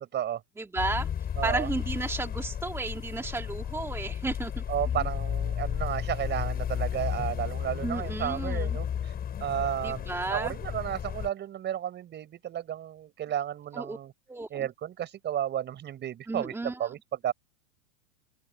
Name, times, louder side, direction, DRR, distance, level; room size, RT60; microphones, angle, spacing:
voice 1, 0.6-1.1 1.4-4.6 7.8-8.8 9.8-10.5 13.7-14.0 14.3-14.7 16.3-16.8, right 2 dB, 5° right, 2.5 m, -33 dB
sound 1, 0.8-11.3, left 9 dB, 20° left, 6.7 m, -33 dB
voice 2, 1.4-1.7 4.7-9.1 9.4-14.1 14.5-17.3, right 10 dB, 25° right, 5.3 m, -33 dB
supercardioid pair, 145°, 42 cm